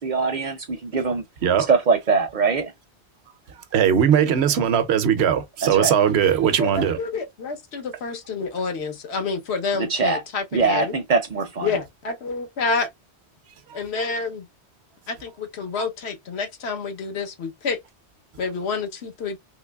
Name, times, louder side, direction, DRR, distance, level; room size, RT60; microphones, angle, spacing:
voice 1, 0.0-1.2 1.7-2.7 5.6-5.9 9.9-10.2 10.5-11.7, right 4 dB, 55° right, 0.6 m, -22 dB
voice 2, 3.7-7.0, right 8 dB, 75° right, 0.8 m, -19 dB
voice 3, 6.6-10.9 11.6-12.9 13.7-14.5 15.1-17.8 18.4-19.4, left 4 dB, 75° left, 1.1 m, -28 dB
3.7 x 2.9 x 2.2 m
omnidirectional pair, 1.1 m